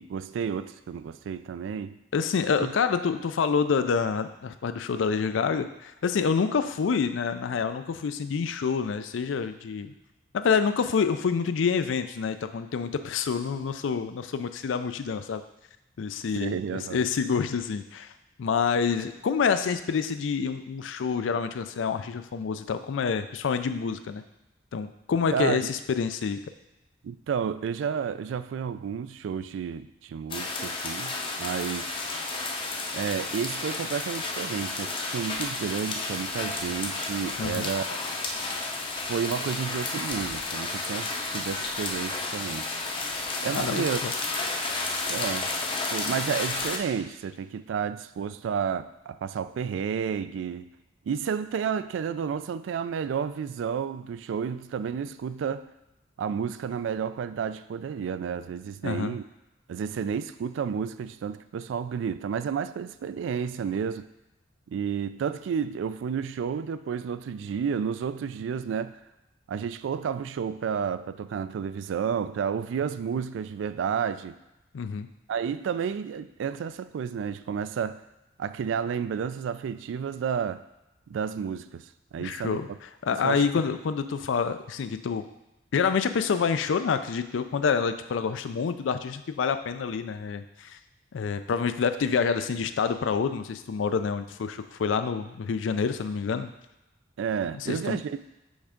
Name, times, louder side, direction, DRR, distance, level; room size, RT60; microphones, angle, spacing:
voice 1, 0.0-2.0 2.6-2.7 16.3-17.1 25.3-25.7 27.0-32.0 32.9-38.0 39.1-42.7 43.4-44.0 45.1-45.5 45.9-50.7 51.1-55.7 56.2-59.2 59.7-64.1 64.7-69.0 69.5-74.4 75.3-78.0 78.4-80.6 81.1-81.9 82.1-82.8 83.2-83.5 97.2-98.2, right 7 dB, 80° right, 13 dB, 0.3 m, -31 dB
voice 2, 2.1-9.9 10.3-15.4 16.0-18.1 18.4-24.2 24.7-26.4 37.4-37.7 43.5-44.1 58.8-59.2 74.7-75.1 82.2-82.7 83.0-85.3 85.7-90.8 91.1-96.5 97.6-98.0, left 6 dB, 85° left, 10 dB, 0.4 m, -27 dB
sound 1, 30.3-46.8, left 3 dB, 25° left, 0.6 m, -32 dB
5.3 x 3.5 x 5.0 m, 0.96 s
head